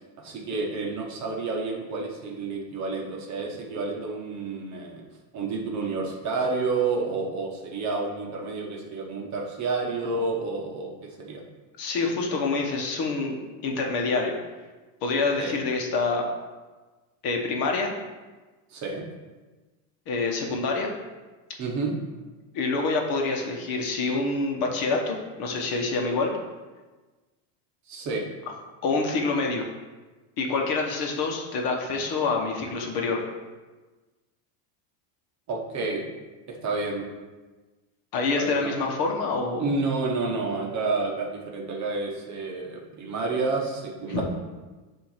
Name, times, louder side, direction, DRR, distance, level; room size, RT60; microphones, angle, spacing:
voice 1, 0.2-5.0 5.3-10.9 11.3-11.4 15.4-15.6 18.7-19.0 21.6-21.9 27.9-28.2 35.5-36.1 36.5-37.0 38.3-38.7 39.6-44.2, right 3 dB, 35° right, 0 dB, 1.0 m, -29 dB
voice 2, 11.8-14.3 15.0-16.3 17.2-17.9 20.1-20.9 22.5-26.3 28.8-29.6 30.4-33.2 38.1-39.7 44.1-44.2, left 3 dB, 45° left, 1 dB, 1.1 m, -26 dB
7.5 x 2.8 x 5.6 m, 1.2 s
cardioid pair, 150°, 49 cm